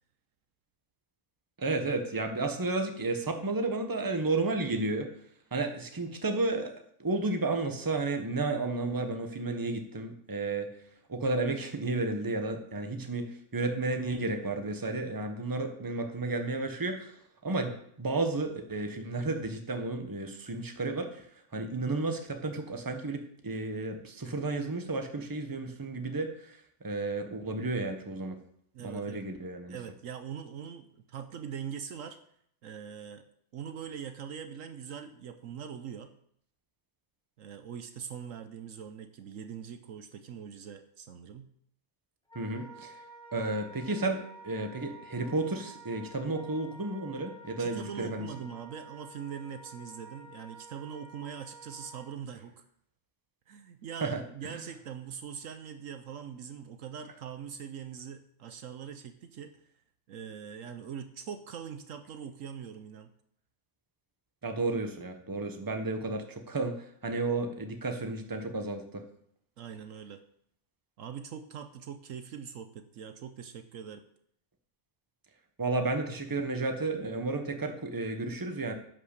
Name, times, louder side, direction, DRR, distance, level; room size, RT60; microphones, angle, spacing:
voice 1, 1.6-5.1 5.5-10.7 11.1-21.3 21.5-28.4 28.8-29.8 42.3-43.0 43.3-48.3 54.0-54.6 64.4-69.0 75.6-78.7, right 2 dB, 15° right, 5 dB, 1.0 m, -32 dB
voice 2, 28.7-29.3 29.7-32.2 32.6-33.2 33.5-36.1 37.4-41.5 47.6-52.5 53.5-59.6 60.1-63.1 69.6-70.2 71.0-74.0, right 8 dB, 70° right, 8 dB, 1.1 m, -42 dB
Wind instrument woodwind instrument, 42.3-52.2, right 3 dB, 5° left, 1.4 m, -50 dB
10.5 x 5.7 x 6.6 m, 0.68 s
omnidirectional pair, 1.5 m